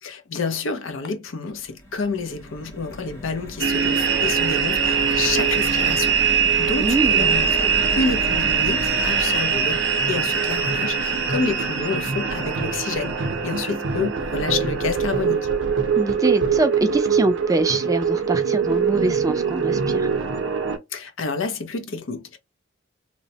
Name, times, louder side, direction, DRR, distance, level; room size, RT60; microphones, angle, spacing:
voice 1, 0.0-15.5 20.9-22.4, left 4 dB, 70° left, 0.6 m, -29 dB
sound 1, 1.5-17.8 18.2-18.3 18.6-18.8, equal, 15° left, 0.8 m, -36 dB
sound 2, 3.6-20.8, right 6 dB, 65° right, 0.6 m, -22 dB
voice 2, 6.8-7.3 15.9-20.1, right 2 dB, 15° right, 0.3 m, -24 dB
2.9 x 2.0 x 2.7 m
head